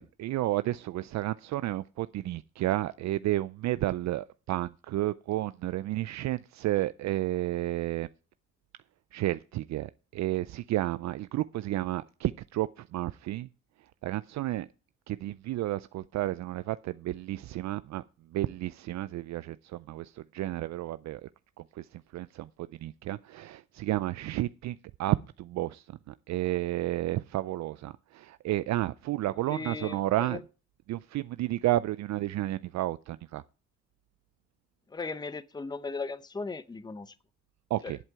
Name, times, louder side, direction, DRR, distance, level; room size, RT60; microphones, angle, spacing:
voice 1, 0.0-8.1 9.1-13.5 14.0-14.7 15.1-18.0 18.3-21.3 21.6-30.4 30.9-33.4 37.7-38.0, right 15 dB, 65° right, 0.4 m, -32 dB
voice 2, 29.4-30.4 34.9-37.2 37.8-37.9, left 4 dB, 15° left, 0.7 m, -37 dB
11.0 x 8.1 x 4.7 m
cardioid pair, 90°, 30 cm